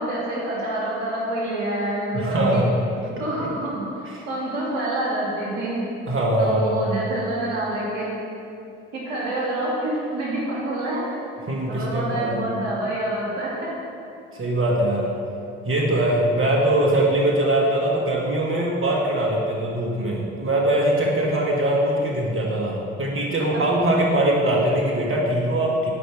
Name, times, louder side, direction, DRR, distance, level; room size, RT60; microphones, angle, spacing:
voice 1, 0.0-2.6 3.2-5.8 6.4-8.1 8.9-11.1 11.7-13.7 23.5-23.6, right 1 dB, 70° right, -5 dB, 2.5 m, -27 dB
voice 2, 2.1-2.8 3.4-3.5 4.1-4.2 6.1-6.9 11.5-12.4 14.3-15.1 15.7-25.9, right 1 dB, 35° right, -3 dB, 1.9 m, -22 dB
8.6 x 5.2 x 7.7 m, 2.6 s
figure-of-eight pair, 50°, 37 cm